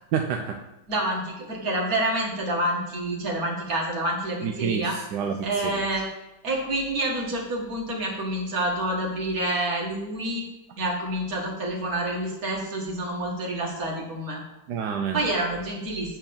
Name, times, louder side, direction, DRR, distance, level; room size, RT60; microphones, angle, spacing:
voice 1, 0.1-0.6 4.4-5.8 14.7-15.3, right 7 dB, 70° right, 3 dB, 1.1 m, -28 dB
voice 2, 0.9-5.0 5.4-6.1 6.4-10.4 10.8-14.4 15.1-16.2, right 1 dB, 45° right, -1 dB, 2.2 m, -28 dB
7.8 x 4.5 x 7.1 m, 1.0 s
omnidirectional pair, 2.2 m